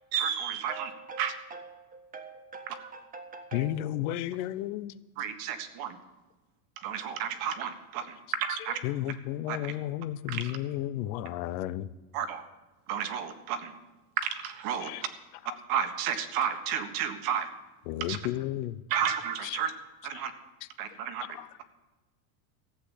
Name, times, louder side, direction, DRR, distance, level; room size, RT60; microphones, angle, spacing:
voice 1, 0.1-0.9 1.2-1.3 2.7-2.8 5.2-6.0 6.8-8.8 9.5-9.6 10.3-10.5 12.1-12.4 12.9-13.7 14.2-15.1 15.7-17.5 18.1-18.2 18.9-19.7 20.0-20.3 20.8-21.3, right 8 dB, 45° right, 1.5 m, -32 dB
voice 2, 0.7-3.8, right 4 dB, 20° right, 1.5 m, -45 dB
voice 3, 3.5-5.0 8.8-11.9 14.8-15.0 15.4-15.6 17.9-18.8 19.4-19.6 20.1-20.2 20.9-21.0 21.3-21.5, left 13 dB, 65° left, 0.8 m, -33 dB
15.0 x 7.9 x 8.3 m
supercardioid pair, 160°, 46 cm